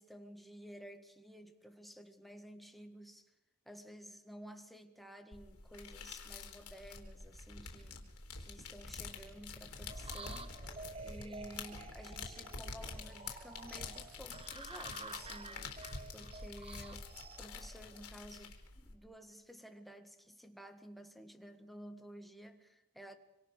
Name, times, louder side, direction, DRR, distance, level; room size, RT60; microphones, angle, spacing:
voice 1, 0.0-3.3 3.7-8.1 8.4-17.1 17.4-23.2, equal, ahead, 1.8 m, -53 dB
sound 1, 5.3-18.9, left 4 dB, 80° left, 4.0 m, -47 dB
sound 2, 9.9-18.3, right 3 dB, 25° right, 1.2 m, -51 dB
26.0 x 25.5 x 6.6 m
head